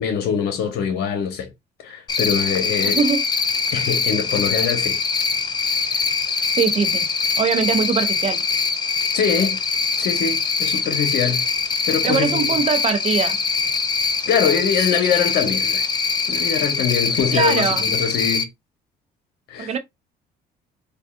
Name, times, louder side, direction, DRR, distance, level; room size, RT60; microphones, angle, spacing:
voice 1, 0.0-1.5 1.8-3.0 3.7-5.0 5.9-6.0 9.1-9.6 10.0-11.4 11.9-12.6 14.3-15.9 16.3-18.5 19.5-19.7, left 7 dB, 75° left, 1.0 m, -23 dB
Cricket, 2.1-18.4, left 5 dB, 25° left, 0.4 m, -22 dB
voice 2, 2.8-3.2 6.6-7.1 7.4-8.4 12.0-13.4 17.3-17.9 19.6-19.8, right 6 dB, 40° right, 0.6 m, -21 dB
3.5 x 2.4 x 2.4 m
cardioid pair, 110°, 17 cm